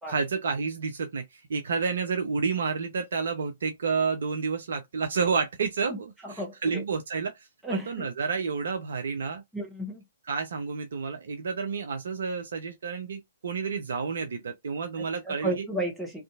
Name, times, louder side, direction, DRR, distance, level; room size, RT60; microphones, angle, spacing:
voice 1, 0.1-9.4 10.3-15.7, right 5 dB, 55° right, 0.4 m, -30 dB
voice 2, 6.2-6.8 7.6-8.1 9.5-10.0 15.3-16.2, right 1 dB, 5° right, 0.8 m, -33 dB
2.6 x 2.4 x 2.3 m
figure-of-eight pair, 120°, 0 cm